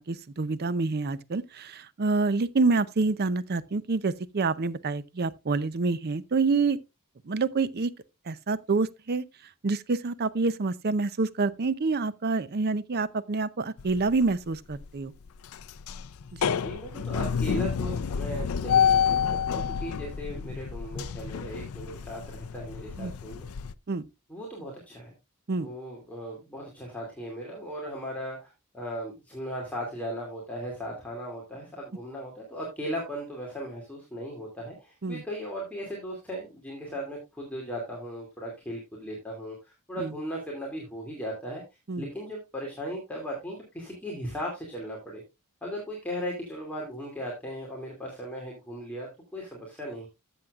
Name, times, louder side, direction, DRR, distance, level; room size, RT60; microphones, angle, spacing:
voice 1, 0.0-6.8 7.2-7.9 8.3-9.2 9.6-15.1 16.3-16.5 23.0-23.1 23.9-24.0 25.5-25.7 35.0-35.2 40.0-40.1 41.9-42.1, right 3 dB, 45° right, 0.6 m, -27 dB
sound 1, 13.8-14.3 14.7-14.9 15.3-23.7, left 7 dB, 70° left, 0.5 m, -29 dB
voice 2, 16.6-23.5 24.3-25.1 25.6-39.6 39.9-41.6 42.0-45.2 45.6-50.1, equal, 5° left, 2.5 m, -37 dB
13.5 x 7.5 x 2.4 m
head